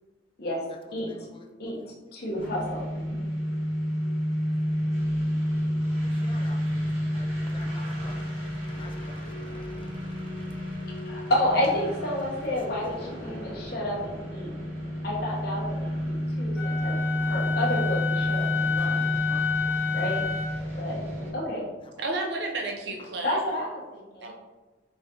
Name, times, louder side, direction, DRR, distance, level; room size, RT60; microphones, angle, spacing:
voice 1, 0.7-1.9 2.3-2.4 4.2-4.5 6.0-11.3 12.3-12.4 18.7-19.6 20.6-21.0 21.8-22.0 23.0-23.2, left 2 dB, 25° left, 2 dB, 0.4 m, -50 dB
voice 2, 1.6-3.2 11.0-14.5 15.0-19.1 19.5-20.2 20.8-21.0 21.3-21.7 23.2-24.3, left 1 dB, 55° left, -4 dB, 1.0 m, -30 dB
sound 1, 2.3-21.3, equal, 35° right, 1.5 m, -30 dB
Wind instrument woodwind instrument, 16.6-20.6, left 7 dB, 5° right, 0.7 m, -30 dB
voice 3, 22.0-23.5 24.2-24.3, right 2 dB, 60° right, 1 dB, 0.7 m, -31 dB
4.7 x 3.2 x 2.8 m, 1.2 s
head